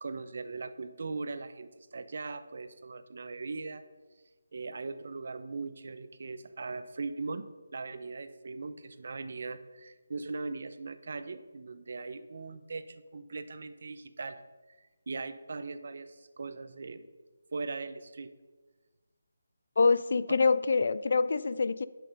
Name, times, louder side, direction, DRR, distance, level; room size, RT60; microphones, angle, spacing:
voice 1, 0.0-3.8 4.5-14.4 15.1-17.1 17.5-18.3 20.3-20.4, right 3 dB, 50° right, 12 dB, 0.7 m, -39 dB
voice 2, 19.8-21.9, left 4 dB, 50° left, 16 dB, 0.4 m, -25 dB
11.5 x 6.6 x 5.3 m, 1.3 s
figure-of-eight pair, 170°, 0 cm